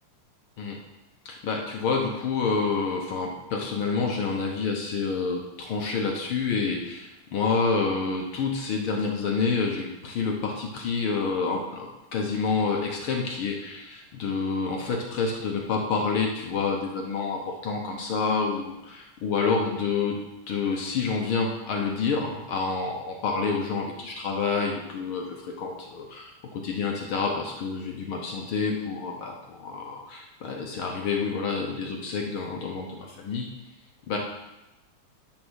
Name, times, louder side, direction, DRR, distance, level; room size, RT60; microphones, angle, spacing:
voice 1, 1.2-20.2 20.5-33.5 34.1-34.2, left 4 dB, 65° left, 0 dB, 1.3 m, -28 dB
10.5 x 4.5 x 6.2 m, 0.98 s
omnidirectional pair, 3.4 m